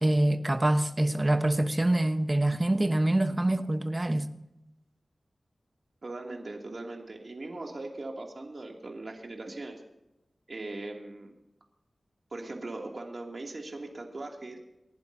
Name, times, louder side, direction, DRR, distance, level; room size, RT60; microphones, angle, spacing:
voice 1, 0.0-4.3, right 1 dB, 25° right, 1.1 m, -25 dB
voice 2, 6.0-9.8 10.5-11.3 12.3-14.6, right 2 dB, 50° right, 2.6 m, -39 dB
28.5 x 11.5 x 2.8 m
wide cardioid pair, 95°, 0 cm